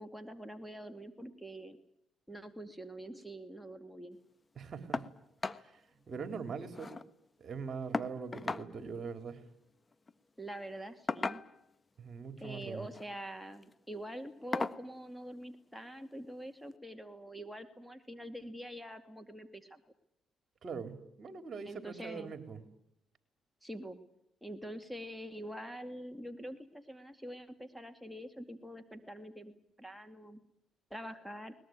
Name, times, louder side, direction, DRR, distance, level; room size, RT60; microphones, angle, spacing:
voice 1, 0.0-1.8 2.3-4.2 10.4-11.4 12.4-19.8 21.7-22.3 23.6-24.0 24.4-30.4 30.9-31.5, right 1 dB, ahead, 6 dB, 2.4 m, -45 dB
voice 2, 4.5-5.1 5.6-6.9 7.4-9.4 12.0-12.9 20.6-22.6, right 5 dB, 50° right, 9 dB, 3.5 m, -42 dB
sound 1, 4.9-5.1 5.4-5.6 6.0-6.1 6.4-7.1 7.9-8.7 9.9-10.1 11.1-11.7 12.8-13.1 13.6-13.7 14.5-14.8 16.1-16.2 16.7-16.8, left 3 dB, 30° left, 1.3 m, -37 dB
22.5 x 20.0 x 9.4 m, 0.75 s
supercardioid pair, 60°, 0 cm